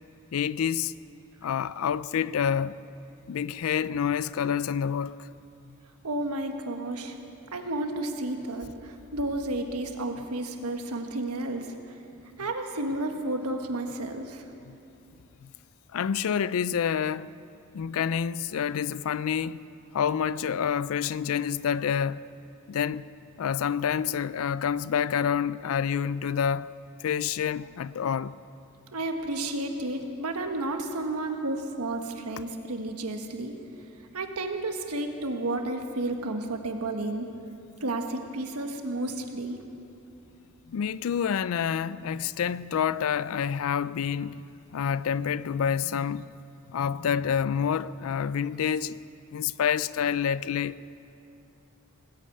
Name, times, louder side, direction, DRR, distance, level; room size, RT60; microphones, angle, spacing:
voice 1, 0.3-0.9 1.4-2.8 3.3-5.3 5.7-5.8 14.7-14.8 15.4-15.5 15.9-17.3 17.7-19.6 19.9-22.2 22.7-23.1 23.4-26.7 27.0-28.3 40.7-44.4 44.7-46.3 46.7-49.0 49.3-50.8, left 7 dB, 70° left, 0.3 m, -28 dB
voice 2, 6.0-7.2 7.5-12.0 12.4-14.4 28.9-33.5 34.1-37.3 37.8-39.6, right 2 dB, 85° right, 1.4 m, -32 dB
19.5 x 8.6 x 8.5 m
head